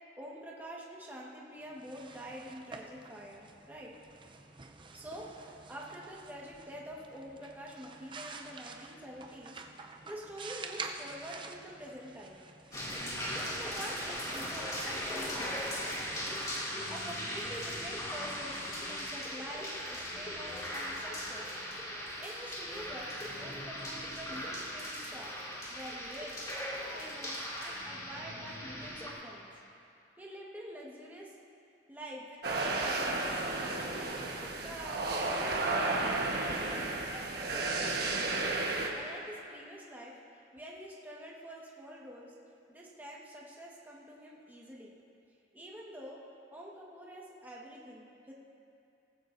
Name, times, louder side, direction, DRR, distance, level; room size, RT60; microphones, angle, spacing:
voice 1, 0.2-3.9 4.9-12.4 12.7-12.8 13.3-15.8 16.9-21.6 22.2-23.1 23.4-25.4 25.7-29.5 30.2-31.3 31.9-37.7 38.7-42.3 42.7-44.9 45.5-46.2 46.5-48.3, equal, 10° right, -4 dB, 1.5 m, -47 dB
sound 1, 1.7-17.3, right 4 dB, 25° right, 0.6 m, -49 dB
sound 2, 12.7-29.1, equal, 20° left, 2.5 m, -39 dB
sound 3, 32.4-38.9, right 2 dB, 60° right, 1.3 m, -32 dB
18.5 x 15.0 x 2.7 m, 2.5 s
head